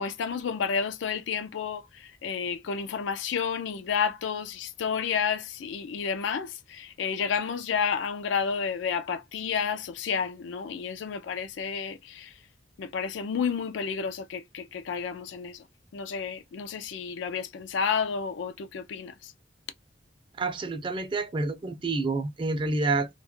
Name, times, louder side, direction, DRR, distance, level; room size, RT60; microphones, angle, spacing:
voice 1, 0.0-12.3 12.8-15.6 15.9-19.3, left 6 dB, 85° left, 0.4 m, -31 dB
voice 2, 20.4-23.1, right 3 dB, 30° right, 0.4 m, -28 dB
2.2 x 2.0 x 3.0 m
head